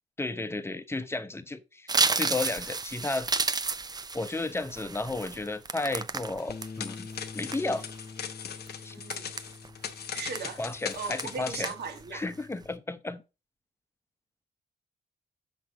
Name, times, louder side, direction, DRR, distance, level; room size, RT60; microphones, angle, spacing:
voice 1, 0.2-3.3 4.1-7.1 7.3-7.8 8.8-8.9 10.6-11.7 12.1-13.2, left 2 dB, 15° left, 0.7 m, -33 dB
sound 1, 1.9-6.7 7.1-8.0 8.5-8.7 9.1-9.9 10.3-10.6 10.9-11.4 11.6-12.0 12.4-12.6, right 4 dB, 25° right, 0.5 m, -31 dB
sound 2, 6.4-11.7, left 7 dB, 70° left, 0.9 m, -40 dB
Bass guitar, 6.5-12.7, left 4 dB, 40° left, 0.9 m, -47 dB
voice 2, 8.9-9.3 10.1-10.6 10.9-12.2, right 5 dB, 70° right, 1.5 m, -37 dB
6.1 x 5.9 x 3.6 m
cardioid pair, 100°, 17 cm